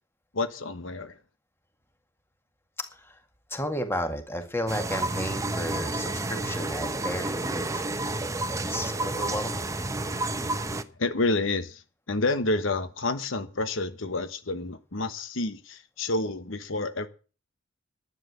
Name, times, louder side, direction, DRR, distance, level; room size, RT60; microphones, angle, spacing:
voice 1, 0.3-1.2 10.0-17.1, left 2 dB, 80° left, 1.2 m, -30 dB
voice 2, 3.5-7.7 8.5-9.7, equal, 10° left, 1.9 m, -33 dB
sound 1, 4.7-10.8, right 2 dB, 15° right, 0.8 m, -30 dB
11.5 x 9.7 x 6.8 m
head